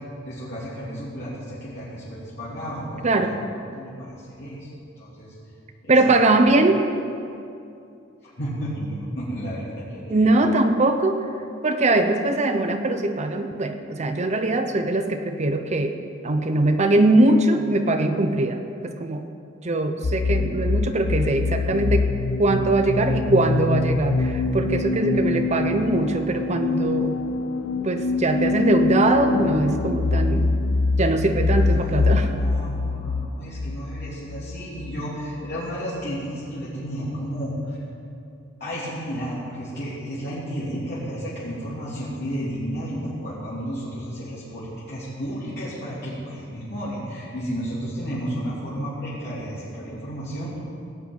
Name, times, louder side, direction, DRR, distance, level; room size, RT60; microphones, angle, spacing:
voice 1, 0.2-3.3 3.7-4.7 5.0-5.3 5.8-6.1 8.4-10.4 31.5-37.8 38.6-50.6, equal, 60° left, -10 dB, 3.1 m, -32 dB
voice 2, 3.0-3.3 5.9-6.8 10.1-11.3 11.6-15.9 16.2-19.2 19.6-22.1 22.4-27.2 27.8-30.5 31.0-32.3, right 2 dB, 35° right, 7 dB, 0.7 m, -21 dB
sound 1, 20.0-35.6, left 3 dB, 85° left, 0.5 m, -24 dB
17.0 x 5.9 x 8.8 m, 2.6 s
head